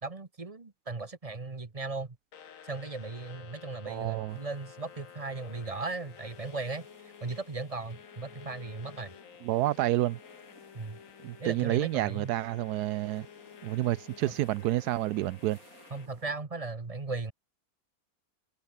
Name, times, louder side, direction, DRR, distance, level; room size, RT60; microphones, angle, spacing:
voice 1, 0.0-2.2 2.6-6.9 7.2-9.1 10.7-11.0 11.4-12.3 15.9-17.3, right 3 dB, 25° right, 1.3 m, -37 dB
sound 1, 2.3-16.1, left 8 dB, 60° left, 1.5 m, -52 dB
voice 2, 3.9-4.4 9.4-10.2 11.2-13.3 13.6-15.6, right 15 dB, 80° right, 1.1 m, -29 dB
sound 2, 4.3-16.3, right 2 dB, 60° right, 6.0 m, -61 dB
omnidirectional pair, 1.7 m